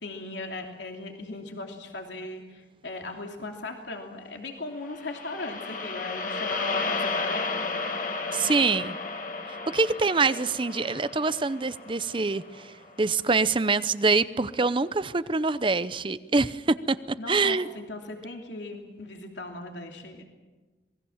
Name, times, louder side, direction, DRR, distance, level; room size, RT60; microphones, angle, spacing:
voice 1, 0.0-7.7 17.2-20.2, left 2 dB, 90° left, 3 dB, 3.0 m, -38 dB
sound 1, 4.9-13.2, left 3 dB, 50° left, 2.4 m, -33 dB
voice 2, 8.3-9.0 9.5-17.7, right 3 dB, 30° right, 15 dB, 0.7 m, -25 dB
27.0 x 21.0 x 7.3 m, 1.2 s
head